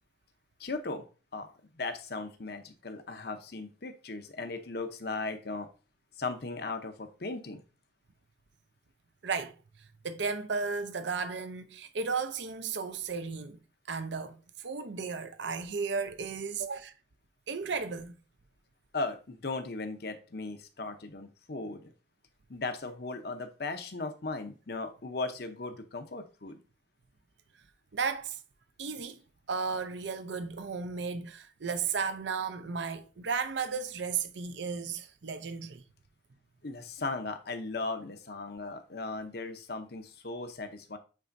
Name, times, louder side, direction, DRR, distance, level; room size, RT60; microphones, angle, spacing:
voice 1, 0.6-1.0 1.3-5.7 6.2-7.6 18.9-21.9 22.5-26.6 36.6-41.0, left 3 dB, 55° left, 0.8 m, -37 dB
voice 2, 9.2-13.6 13.9-16.9 17.5-18.1 27.9-28.4 28.8-29.2 29.5-35.8, right 5 dB, 65° right, 0.6 m, -34 dB
8.5 x 4.2 x 2.6 m
head